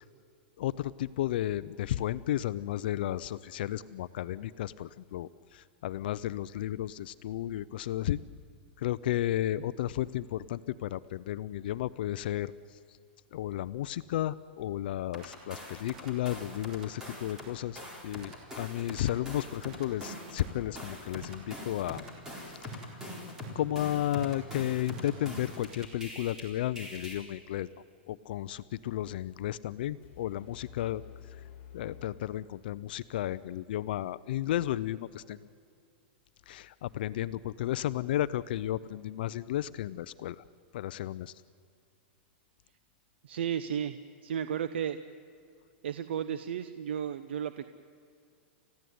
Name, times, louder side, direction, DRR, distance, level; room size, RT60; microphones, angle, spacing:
voice 1, 0.6-8.2 8.8-12.5 13.3-22.0 22.6-22.8 23.5-27.7 28.1-31.0 31.7-35.4 36.5-40.4 40.7-41.3, left 13 dB, 60° left, 15 dB, 0.6 m, -33 dB
sound 1, 15.1-17.5 17.8-26.4 26.8-27.1, equal, 10° right, 4.1 m, -43 dB
sound 2, 30.0-33.0, left 9 dB, 30° left, 3.7 m, -51 dB
voice 2, 43.2-45.0 45.8-47.7, right 8 dB, 80° right, 12 dB, 0.9 m, -34 dB
29.5 x 15.5 x 9.5 m, 2.4 s
supercardioid pair, 165°, 6 cm